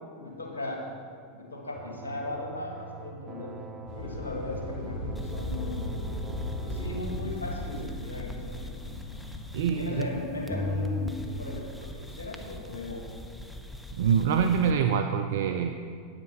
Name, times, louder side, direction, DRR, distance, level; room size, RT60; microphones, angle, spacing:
voice 1, 0.2-0.9 1.3-3.6 3.9-5.9 6.6-8.9 9.8-13.0, left 2 dB, 80° left, -1 dB, 2.1 m, -37 dB
sound 1, 1.7-7.0, right 6 dB, 25° right, 0.9 m, -45 dB
sound 2, 3.9-10.8, left 1 dB, 45° left, 2.0 m, -37 dB
sound 3, 5.2-10.2 10.5-14.7, left 2 dB, 5° left, 0.8 m, -39 dB
voice 2, 9.5-10.1 14.0-15.7, right 7 dB, 65° right, 7 dB, 0.4 m, -25 dB
8.9 x 8.8 x 5.6 m, 2.2 s
figure-of-eight pair, 85°, 0 cm